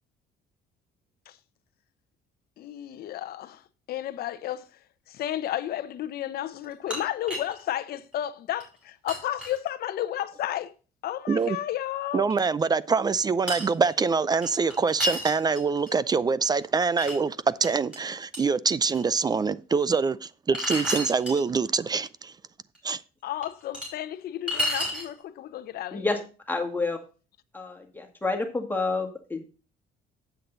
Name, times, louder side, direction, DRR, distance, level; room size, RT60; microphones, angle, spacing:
voice 1, 2.6-3.6 3.9-4.7 5.1-10.7 11.0-12.3 23.2-26.1, left 12 dB, 65° left, 0.8 m, -32 dB
sound 1, 6.6-7.6 8.1-8.2 8.6-8.7 9.1-9.6 11.4-11.5 12.3-12.4 13.5-13.9 14.4-15.9 16.4-17.2 17.6-18.0 18.3-18.4 18.9-19.0 20.5-21.4 22.7-22.8 23.4-23.9 24.5-25.1, left 1 dB, 5° right, 5.6 m, -31 dB
voice 2, 12.1-22.3 22.8-23.0, right 5 dB, 25° right, 0.4 m, -25 dB
voice 3, 26.5-27.0 27.5-29.4, left 3 dB, 10° left, 1.9 m, -29 dB
8.2 x 7.9 x 4.0 m
cardioid pair, 110°, 17 cm